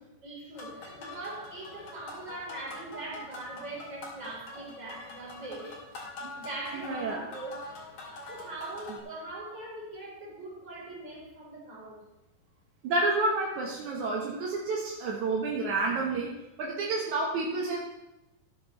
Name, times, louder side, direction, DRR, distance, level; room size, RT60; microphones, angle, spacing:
voice 1, 0.0-5.8 6.3-8.0 8.3-12.1, right 2 dB, 25° right, -4 dB, 4.2 m, -42 dB
sound 1, 0.5-9.0, left 2 dB, 50° left, 3.8 m, -44 dB
voice 2, 6.7-7.3 12.8-16.3 16.6-17.8, right 3 dB, 65° right, -2 dB, 1.9 m, -29 dB
14.0 x 10.5 x 3.2 m, 0.97 s
omnidirectional pair, 5.1 m